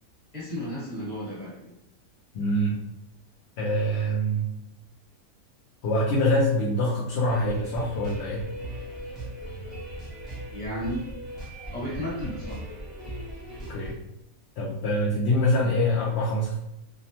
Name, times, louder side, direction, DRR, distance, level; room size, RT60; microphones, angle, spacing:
voice 1, 0.3-1.7 10.5-11.1 11.7-12.7, equal, 30° left, -6 dB, 1.1 m, -33 dB
voice 2, 2.3-2.8 3.6-4.5 5.8-8.4 13.7-14.0 14.6-16.6, left 1 dB, 70° left, -5 dB, 0.6 m, -25 dB
sound 1, 7.3-13.9, right 1 dB, ahead, 0.6 m, -38 dB
2.6 x 2.1 x 2.8 m, 0.83 s
omnidirectional pair, 1.6 m